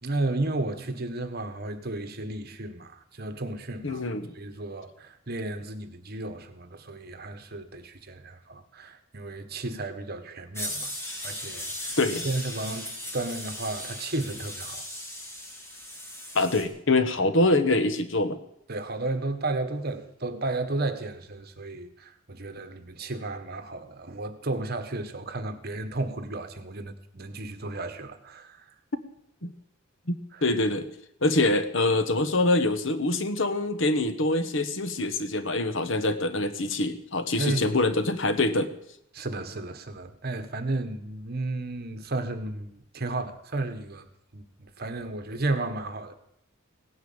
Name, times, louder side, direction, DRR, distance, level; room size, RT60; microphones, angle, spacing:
voice 1, 0.0-10.9 11.2-12.0 12.2-14.8 18.7-28.6 30.3-30.4 37.4-37.7 39.1-44.1 44.3-46.1, right 2 dB, 50° right, 9 dB, 1.5 m, -33 dB
voice 2, 3.8-4.3 12.0-12.3 16.3-18.4 29.4-29.5 30.1-30.9 31.2-38.7, left 2 dB, 65° left, 10 dB, 1.3 m, -25 dB
sound 1, 10.6-16.6, left 1 dB, 15° left, 3.0 m, -37 dB
17.0 x 9.7 x 8.7 m, 0.76 s
head